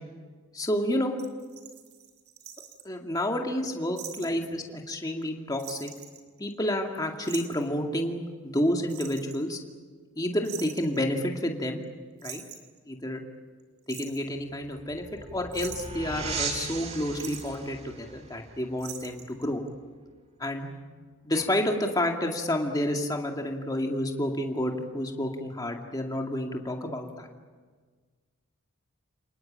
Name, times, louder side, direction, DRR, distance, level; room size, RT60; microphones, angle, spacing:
voice 1, 0.5-1.2 2.8-5.9 6.4-9.6 10.2-11.8 12.2-12.4 12.9-13.2 13.9-15.0 15.3-19.6 20.4-20.8 21.2-27.3, left 1 dB, 20° left, 2 dB, 2.3 m, -30 dB
sound 1, 1.2-2.8 4.0-4.3 4.6-4.7 5.0-5.3 5.6-6.8 7.2-7.7 8.9-9.5 10.4-11.0 11.8-11.9 12.2-12.8 13.6-14.2 15.0-15.2 15.5-16.1 17.1-17.6 18.8-19.4 19.7-19.8, right 9 dB, 85° right, 2.9 m, -43 dB
sound 2, 14.4-19.8, right 4 dB, 30° right, 2.0 m, -38 dB
29.5 x 19.5 x 8.9 m, 1.5 s
head